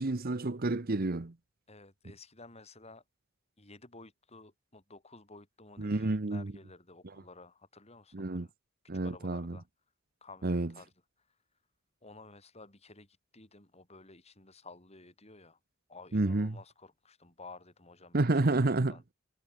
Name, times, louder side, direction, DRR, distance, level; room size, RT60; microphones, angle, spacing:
voice 1, 0.0-1.3 5.8-6.5 8.1-8.5 8.9-9.6 10.4-10.7 16.1-16.6 18.1-18.9, right 2 dB, 45° right, 0.9 m, -29 dB
voice 2, 1.7-3.0 3.6-8.5 9.0-9.7 10.2-10.9 12.0-15.6 15.9-19.0, left 3 dB, 30° left, 7.1 m, -53 dB
head